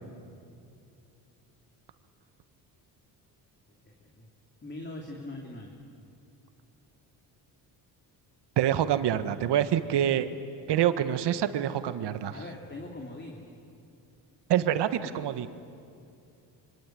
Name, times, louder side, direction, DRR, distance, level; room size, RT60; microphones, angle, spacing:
voice 1, 3.9-4.3 4.6-5.7 12.3-13.4, left 2 dB, 25° left, 1 dB, 3.1 m, -41 dB
voice 2, 8.6-10.3 10.7-12.3 14.5-15.5, right 10 dB, 70° right, 12 dB, 1.4 m, -26 dB
25.0 x 23.5 x 9.2 m, 2.5 s
cardioid pair, 80°, 43 cm